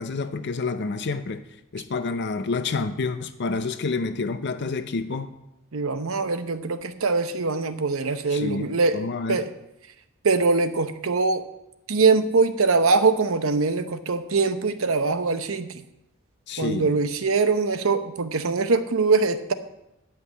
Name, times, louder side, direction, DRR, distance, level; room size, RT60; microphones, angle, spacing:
voice 1, 0.0-1.4 1.7-5.3 8.3-9.4 16.5-17.0, left 4 dB, 55° left, 10 dB, 0.6 m, -28 dB
voice 2, 5.7-9.5 10.2-11.4 11.9-15.8 16.6-19.5, right 4 dB, 70° right, 10 dB, 0.8 m, -23 dB
10.5 x 5.7 x 8.2 m, 0.89 s
head